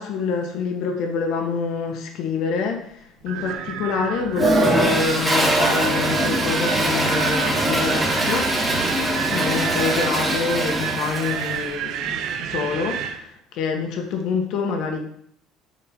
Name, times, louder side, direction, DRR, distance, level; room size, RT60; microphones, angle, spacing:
voice 1, 0.0-8.5 9.3-15.0, left 5 dB, 65° left, 3 dB, 1.8 m, -26 dB
Wind, 3.3-13.2, right 9 dB, 65° right, 0.8 m, -29 dB
Toilet flush, 4.3-11.6, right 1 dB, 10° right, 2.0 m, -22 dB
7.9 x 5.9 x 5.5 m, 0.67 s
cardioid pair, 135°, 0 cm